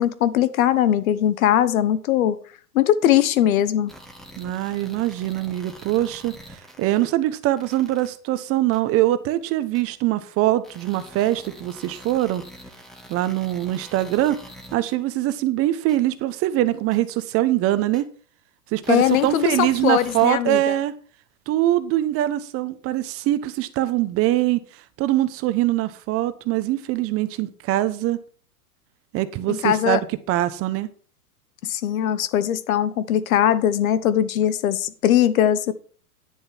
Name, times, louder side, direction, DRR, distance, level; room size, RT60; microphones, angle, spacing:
voice 1, 0.0-2.4 2.7-3.9 18.9-20.8 29.5-30.0 31.6-35.7, left 11 dB, 60° left, 1.2 m, -20 dB
sound 1, 3.9-7.0 7.6-8.1 8.7-8.8 9.7-9.8 10.6-14.9 15.9-16.0 16.9-17.0 17.9-18.0 18.8-20.3, equal, ahead, 1.8 m, -45 dB
voice 2, 4.4-12.4 13.1-14.4 14.7-18.0 18.7-20.9 21.5-24.6 25.0-28.2 29.1-30.0 30.3-30.9, right 14 dB, 30° right, 0.9 m, -23 dB
10.5 x 6.6 x 5.9 m
hypercardioid pair, 115°, 46 cm